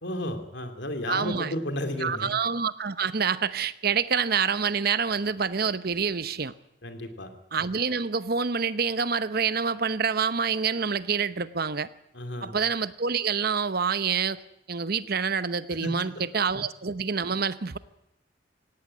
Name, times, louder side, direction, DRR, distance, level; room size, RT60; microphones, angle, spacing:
voice 1, 0.0-2.4 6.8-7.3 12.1-12.5 15.8-16.2 16.5-16.6, left 1 dB, 70° left, 7 dB, 2.9 m, -33 dB
voice 2, 1.1-1.5 2.0-6.5 7.5-11.9 12.4-14.4 14.7-17.8, right 6 dB, 55° right, 14 dB, 0.9 m, -27 dB
18.0 x 17.5 x 9.8 m, 0.81 s
head